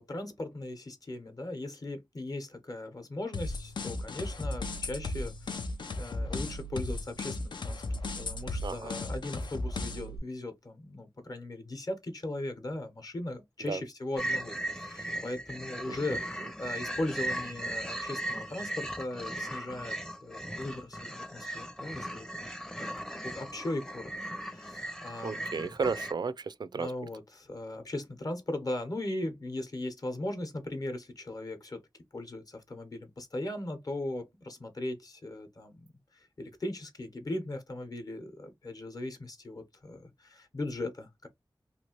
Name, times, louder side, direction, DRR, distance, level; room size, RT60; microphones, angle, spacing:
voice 1, 0.0-5.6 6.0-19.9 20.2-22.3 22.8-22.9 23.2-24.1 24.5-25.7 26.7-31.8 32.1-35.9 36.1-41.3, left 1 dB, 55° left, 0.9 m, -38 dB
sound 1, 3.3-10.2, left 2 dB, 90° left, 0.5 m, -36 dB
voice 2, 8.6-8.9 13.7-13.8 15.9-16.0 25.2-26.9, right 5 dB, 65° right, 0.3 m, -33 dB
sound 2, 14.2-26.1, right 1 dB, 10° left, 0.5 m, -38 dB
3.0 x 2.5 x 2.9 m
wide cardioid pair, 65°, 8 cm